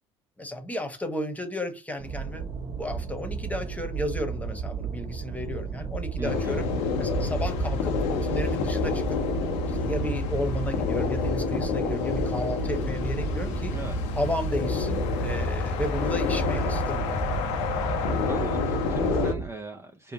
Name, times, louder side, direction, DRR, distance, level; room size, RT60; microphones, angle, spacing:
voice 1, 0.4-2.5 2.8-6.7 7.0-9.2 9.7-13.7 14.2-17.3, left 1 dB, 10° left, 1.2 m, -33 dB
sound 1, 2.0-19.5, right 6 dB, 45° right, 1.3 m, -34 dB
sound 2, 6.2-19.3, left 4 dB, 70° left, 0.8 m, -28 dB
voice 2, 6.2-6.7 13.7-14.0 18.3-20.1, right 2 dB, 20° right, 0.6 m, -38 dB
5.2 x 2.1 x 2.8 m
hypercardioid pair, 60°, 15 cm